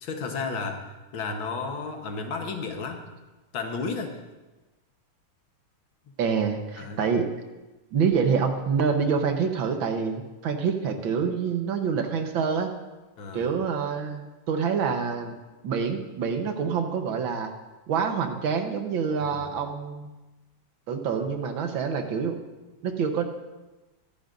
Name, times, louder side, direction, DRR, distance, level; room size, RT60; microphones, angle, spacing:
voice 1, 0.0-3.1 3.5-4.2 6.8-7.1 13.2-13.5 19.2-19.5, left 4 dB, 80° left, 4 dB, 2.0 m, -33 dB
voice 2, 6.2-7.3 7.9-12.7 13.3-15.4 15.6-17.5 17.9-20.1 20.9-22.4 22.8-23.2, right 6 dB, 75° right, 5 dB, 1.8 m, -26 dB
22.5 x 10.5 x 2.6 m, 1.1 s
omnidirectional pair, 2.2 m